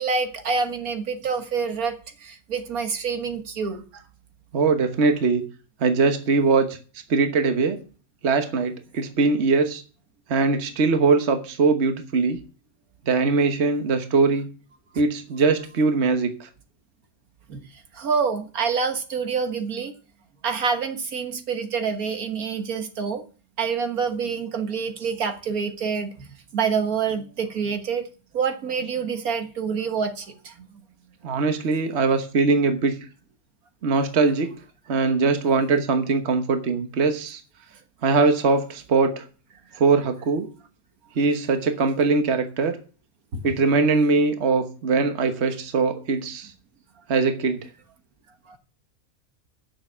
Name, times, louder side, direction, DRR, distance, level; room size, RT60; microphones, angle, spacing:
voice 1, 0.0-2.0 2.2-3.8 17.5-17.6 18.0-19.9 20.4-23.2 23.6-26.3 26.5-28.0 28.3-30.5, right 5 dB, 80° right, 7 dB, 1.9 m, -27 dB
voice 2, 4.5-5.4 5.8-6.7 7.1-7.8 8.2-9.8 10.3-12.4 13.1-14.5 15.0-16.5 31.2-33.0 33.8-34.5 34.9-37.4 38.0-39.2 39.8-40.5 41.2-42.8 43.4-46.5 47.1-47.6, right 4 dB, 50° right, 7 dB, 1.4 m, -21 dB
9.6 x 6.9 x 7.1 m, 0.36 s
omnidirectional pair, 1.5 m